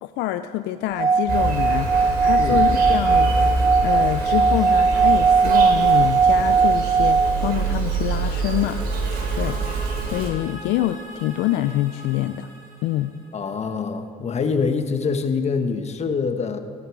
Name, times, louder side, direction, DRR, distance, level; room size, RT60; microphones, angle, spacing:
voice 1, 0.0-3.3 3.8-12.5 12.8-13.1, left 14 dB, 90° left, 10 dB, 0.5 m, -26 dB
Singing / Glass, 0.9-7.5, right 5 dB, 20° right, 0.5 m, -18 dB
Insect, 1.3-10.3, right 4 dB, 65° right, 3.1 m, -26 dB
sound 1, 6.9-13.8, equal, 50° right, 4.9 m, -43 dB
voice 2, 13.3-16.6, left 5 dB, 40° left, 7 dB, 1.3 m, -25 dB
17.0 x 13.5 x 4.7 m, 2.1 s
cardioid pair, 110°, 17 cm